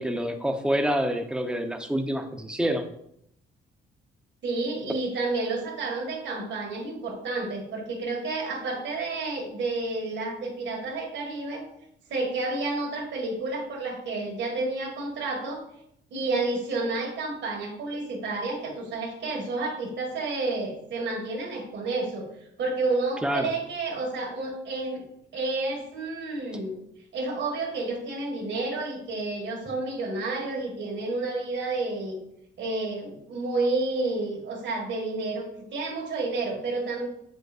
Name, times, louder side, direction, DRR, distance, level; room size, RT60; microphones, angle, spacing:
voice 1, 0.0-2.9 23.2-23.5, equal, 5° right, 5 dB, 0.8 m, -27 dB
voice 2, 4.4-11.7 12.1-15.6 16.1-22.3 22.6-25.1 25.3-26.7 27.1-32.2 32.6-37.1, right 3 dB, 65° right, 0 dB, 1.9 m, -30 dB
7.3 x 5.3 x 2.5 m, 0.73 s
cardioid pair, 90°, 20 cm